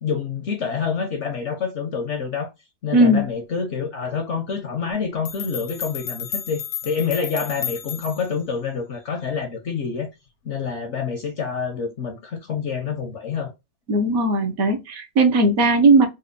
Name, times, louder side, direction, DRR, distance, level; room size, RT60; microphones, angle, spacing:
voice 1, 0.0-2.5 2.8-10.1 10.4-13.5, left 6 dB, 55° left, 0.9 m, -27 dB
voice 2, 2.9-3.2 13.9-16.1, right 2 dB, 60° right, 1.2 m, -17 dB
sound 1, 4.9-5.0 5.3-8.4, left 8 dB, 75° left, 1.1 m, -32 dB
4.2 x 2.3 x 2.5 m
omnidirectional pair, 1.8 m